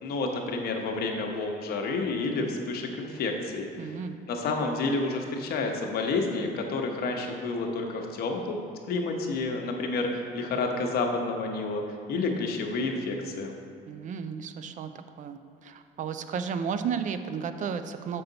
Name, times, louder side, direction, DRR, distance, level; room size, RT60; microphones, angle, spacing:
voice 1, 0.0-3.9 4.3-8.6 8.9-11.8 12.1-13.5, left 3 dB, 65° left, 2 dB, 0.9 m, -30 dB
voice 2, 3.8-4.2 13.9-14.9 15.2-18.2, right 6 dB, 50° right, 10 dB, 0.5 m, -33 dB
6.9 x 5.5 x 3.9 m, 2.2 s
cardioid pair, 110°, 17 cm